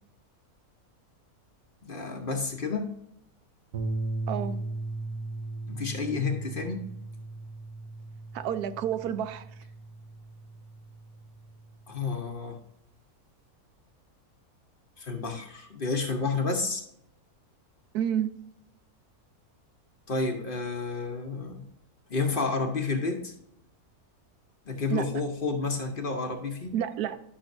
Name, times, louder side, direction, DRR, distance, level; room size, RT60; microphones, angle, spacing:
voice 1, 1.8-2.9 5.7-6.9 11.9-12.6 15.0-16.8 20.1-21.6 22.1-23.3 24.7-26.8, left 4 dB, 40° left, 1.0 m, -30 dB
sound 1, 3.7-12.1, right 2 dB, 70° right, 1.5 m, -37 dB
voice 2, 4.3-4.6 8.3-9.5 17.9-18.4 24.9-25.1 26.7-27.2, right 9 dB, 90° right, 1.1 m, -29 dB
11.5 x 6.2 x 2.6 m
omnidirectional pair, 1.6 m